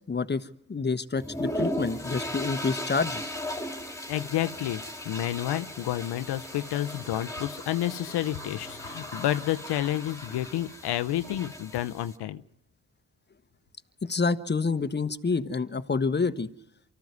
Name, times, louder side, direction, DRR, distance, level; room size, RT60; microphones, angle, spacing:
voice 1, 0.1-3.3 14.0-16.5, left 4 dB, 25° left, 11 dB, 1.2 m, -28 dB
sound 1, 1.2-12.2, equal, 10° left, 2.9 m, -37 dB
voice 2, 4.1-12.4, left 13 dB, 85° left, 11 dB, 0.8 m, -30 dB
24.5 x 14.0 x 9.5 m, 0.81 s
cardioid pair, 60°, 39 cm